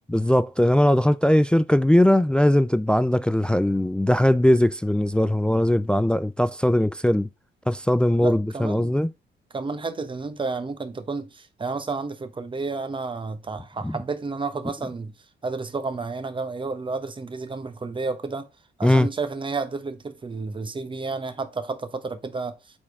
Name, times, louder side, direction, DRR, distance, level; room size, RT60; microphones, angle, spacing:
voice 1, 0.1-7.3 7.7-9.1 13.8-13.9 18.8-19.1, left 1 dB, 5° left, 0.3 m, -20 dB
voice 2, 8.2-8.9 9.5-15.1 15.4-18.5 18.8-22.6, right 4 dB, 25° right, 1.0 m, -31 dB
7.3 x 4.5 x 3.5 m
cardioid pair, 90°, 20 cm